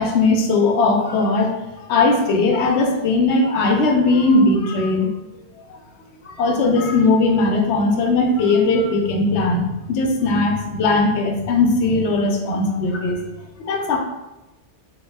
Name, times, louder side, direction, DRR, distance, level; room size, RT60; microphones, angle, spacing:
voice 1, 0.0-1.6 1.9-5.1 6.4-13.2 13.6-14.0, left 3 dB, 80° left, 2 dB, 0.9 m, -18 dB
3.5 x 2.3 x 3.2 m, 1.0 s
omnidirectional pair, 1.1 m